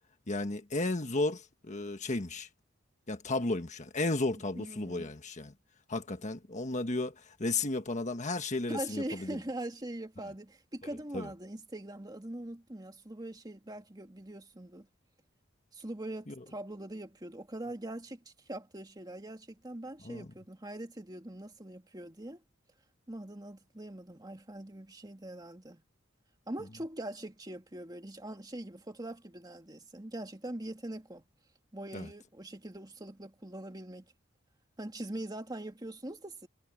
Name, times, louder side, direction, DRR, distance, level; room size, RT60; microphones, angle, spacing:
voice 1, 0.3-2.5 3.1-5.5 5.9-9.4 11.1-11.3 16.3-16.4 20.0-20.2 31.9-32.1, left 2 dB, 35° left, 1.4 m, -33 dB
voice 2, 4.5-5.2 8.7-14.9 15.7-22.4 23.1-25.8 26.5-31.2 31.7-34.1 34.8-36.5, right 1 dB, 20° right, 2.0 m, -42 dB
head